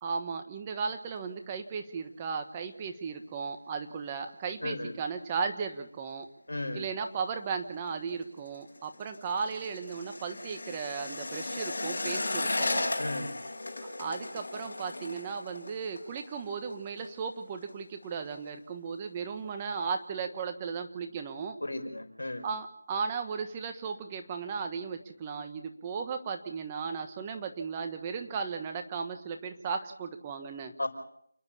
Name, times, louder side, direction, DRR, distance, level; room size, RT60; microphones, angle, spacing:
voice 1, 0.0-6.3 6.7-12.9 14.0-21.6 22.4-30.7, right 5 dB, 15° right, 6 dB, 1.2 m, -36 dB
voice 2, 4.6-4.9 6.5-6.9 13.0-13.4 21.6-22.5 30.8-30.9, left 2 dB, 85° left, 7 dB, 4.9 m, -34 dB
sound 1, 8.1-17.1 17.4-17.7 18.0-18.5 18.9-19.0, left 2 dB, 60° left, 6.6 m, -36 dB
29.0 x 10.5 x 8.6 m, 0.71 s
figure-of-eight pair, 170°, 0 cm